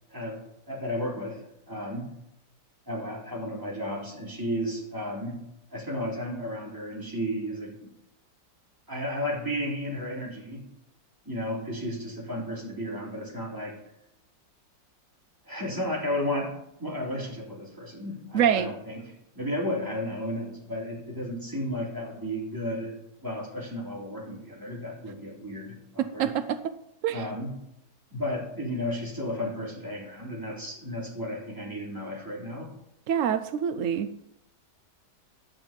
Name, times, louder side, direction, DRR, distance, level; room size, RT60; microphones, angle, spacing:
voice 1, 0.1-0.4 0.7-2.1 2.9-5.4 5.7-7.9 8.9-10.7 11.2-13.8 15.4-22.9 23.2-26.3 27.1-27.5 28.1-32.7, left 1 dB, 10° right, -5 dB, 3.6 m, -33 dB
voice 2, 18.3-18.7 26.0-26.7 27.0-27.2 33.1-34.1, right 9 dB, 80° right, 11 dB, 0.7 m, -26 dB
11.0 x 8.7 x 5.2 m, 0.81 s
omnidirectional pair, 2.0 m